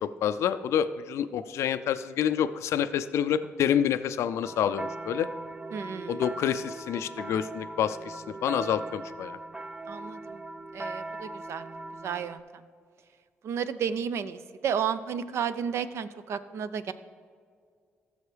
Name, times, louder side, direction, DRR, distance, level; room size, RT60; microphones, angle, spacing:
voice 1, 0.0-5.3 6.1-9.4, left 9 dB, 75° left, 12 dB, 0.3 m, -28 dB
sound 1, 4.4-12.4, right 2 dB, 15° right, 0.4 m, -39 dB
voice 2, 5.7-6.2 9.9-10.4 10.7-11.6 12.0-12.4 13.4-16.9, right 7 dB, 70° right, 13 dB, 0.5 m, -32 dB
14.5 x 6.3 x 3.3 m, 2.1 s
supercardioid pair, 60°, 5 cm